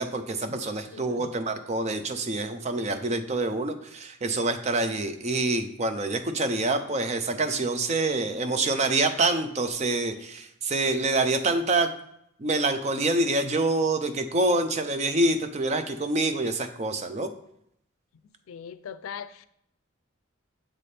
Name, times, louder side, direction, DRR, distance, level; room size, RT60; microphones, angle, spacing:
voice 1, 0.0-11.9 12.4-17.3, right 2 dB, 35° right, 8 dB, 0.5 m, -26 dB
voice 2, 0.9-1.3 18.5-19.5, left 7 dB, 90° left, 14 dB, 0.4 m, -40 dB
7.4 x 4.2 x 3.3 m, 0.74 s
head